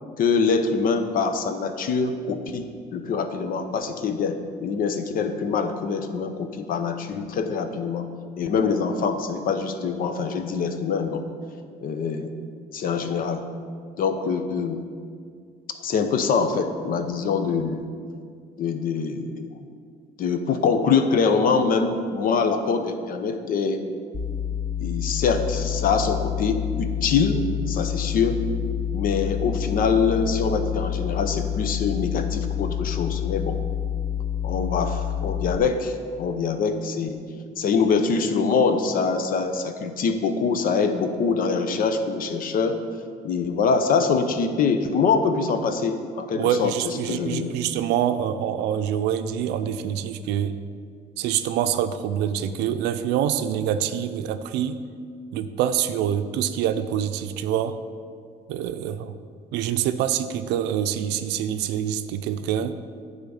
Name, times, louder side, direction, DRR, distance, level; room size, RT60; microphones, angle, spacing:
voice 1, 0.2-8.1 8.4-11.2 11.8-12.3 12.7-13.5 14.0-14.8 15.8-17.8 18.6-19.5 20.2-23.8 24.8-28.4 28.9-33.6 34.4-37.2 37.6-42.8 43.2-47.5, left 5 dB, 55° left, 8 dB, 0.8 m, -24 dB
sound 1, 24.1-35.6, left 9 dB, 25° left, 0.6 m, -28 dB
voice 2, 46.3-50.6 51.2-54.8 55.3-57.8 58.5-59.1 59.5-62.8, right 9 dB, 90° right, 10 dB, 0.5 m, -25 dB
9.8 x 3.7 x 7.0 m, 2.1 s
cardioid pair, 110°, 17 cm